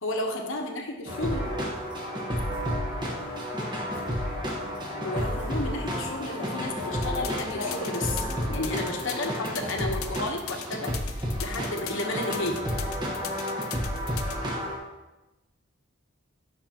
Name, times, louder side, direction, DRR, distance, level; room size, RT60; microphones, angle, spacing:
voice 1, 0.0-1.4 5.0-12.6, left 2 dB, 60° left, 3 dB, 1.0 m, -32 dB
sound 1, 1.1-14.8, equal, 20° right, 1.3 m, -31 dB
sound 2, 7.0-14.4, left 10 dB, 85° left, 0.6 m, -39 dB
9.3 x 5.9 x 2.9 m, 1.1 s
head